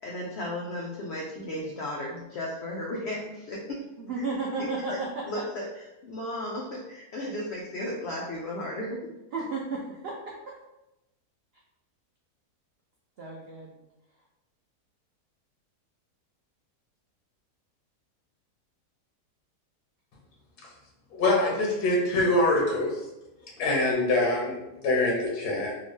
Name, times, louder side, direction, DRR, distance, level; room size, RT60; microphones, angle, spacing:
voice 1, 0.0-3.8 4.6-5.0 5.3-5.7 6.0-9.1, left 1 dB, 70° left, -2 dB, 0.6 m, -34 dB
voice 2, 4.0-5.1 9.3-10.5 13.2-13.8, right 3 dB, 85° right, -2 dB, 0.5 m, -33 dB
voice 3, 21.1-22.9 23.6-25.7, left 2 dB, 85° left, -2 dB, 1.4 m, -24 dB
3.7 x 2.2 x 3.1 m, 0.95 s
omnidirectional pair, 1.6 m